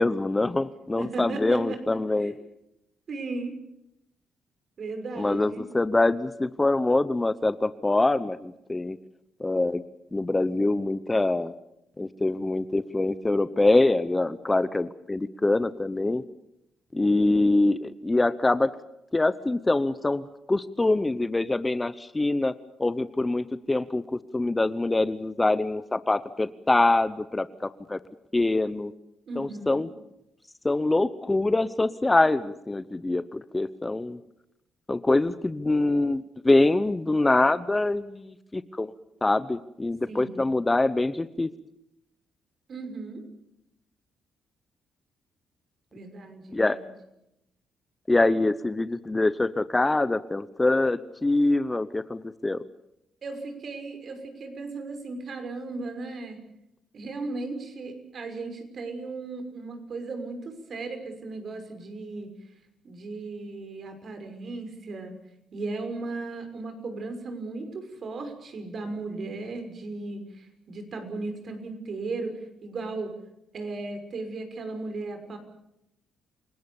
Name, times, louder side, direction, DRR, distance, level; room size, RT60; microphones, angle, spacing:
voice 1, 0.0-2.3 5.2-9.0 9.4-9.8 10.1-11.5 12.0-16.2 16.9-18.7 19.1-22.5 22.8-28.0 28.3-28.9 29.4-29.9 30.6-34.2 34.9-38.9 39.2-41.5 46.5-46.8 48.1-52.6, left 2 dB, 15° left, 14 dB, 0.9 m, -24 dB
voice 2, 1.0-1.8 2.2-2.4 3.1-3.5 4.8-5.6 29.3-29.8 40.1-40.5 42.7-43.2 45.9-46.8 53.2-56.4 56.9-62.3 62.8-65.1 65.5-73.1 73.5-75.4, right 3 dB, 50° right, 6 dB, 6.0 m, -36 dB
29.0 x 18.5 x 7.2 m, 0.84 s
cardioid pair, 90°, 0 cm